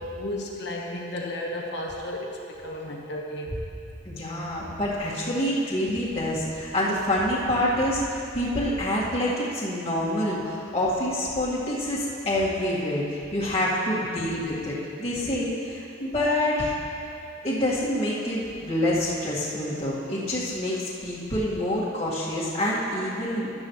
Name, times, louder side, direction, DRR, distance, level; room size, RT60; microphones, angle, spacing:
voice 1, 0.0-3.5 14.0-14.4, left 1 dB, 60° left, -1 dB, 1.4 m, -34 dB
voice 2, 4.1-16.8 17.4-23.5, left 1 dB, 30° left, -9 dB, 2.0 m, -27 dB
13.5 x 12.0 x 3.2 m, 2.6 s
head